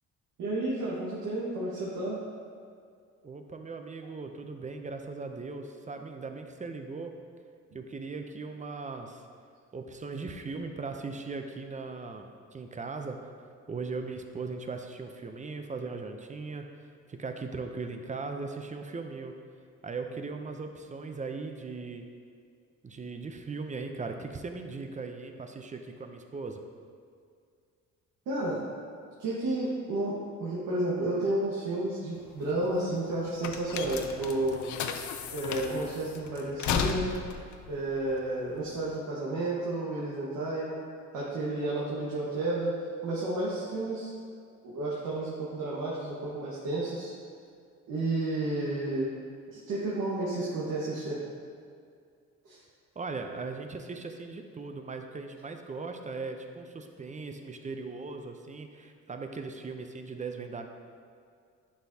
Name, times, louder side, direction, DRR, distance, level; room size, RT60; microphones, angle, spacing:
voice 1, 0.4-2.2 28.3-28.6 29.2-34.7 35.3-37.1 37.7-40.8 41.1-42.8 43.0-44.1 44.6-47.1 47.9-49.1 49.5-51.2 52.4-52.6, right 2 dB, 80° right, -8 dB, 1.4 m, -31 dB
voice 2, 3.2-7.1 7.7-9.2 9.7-13.2 13.7-16.7 17.1-19.3 19.8-22.1 22.8-26.6 53.0-60.7, right 4 dB, 25° right, 5 dB, 0.6 m, -38 dB
sound 1, 32.2-38.9, left 7 dB, 75° left, 0.5 m, -35 dB
10.0 x 4.5 x 2.8 m, 2.2 s
cardioid pair, 90°, 30 cm